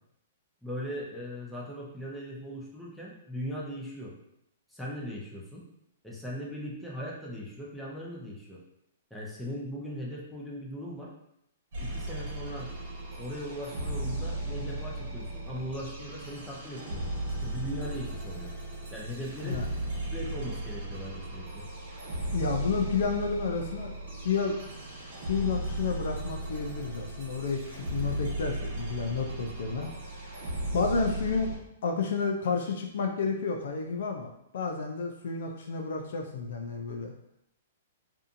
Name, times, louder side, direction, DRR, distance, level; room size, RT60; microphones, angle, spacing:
voice 1, 0.6-4.1 4.7-5.6 6.0-8.6 9.1-11.1 11.8-12.7 13.2-17.1 17.4-18.5 18.9-19.6 20.1-21.6, equal, ahead, -5 dB, 0.7 m, -39 dB
sound 1, 11.7-31.6, right 1 dB, 60° right, 1.1 m, -36 dB
voice 2, 22.3-24.0 24.2-24.6 25.3-30.2 30.7-31.5 31.8-37.1, left 5 dB, 70° left, 3 dB, 0.4 m, -31 dB
2.7 x 2.4 x 2.5 m, 0.78 s
hypercardioid pair, 135°, 0 cm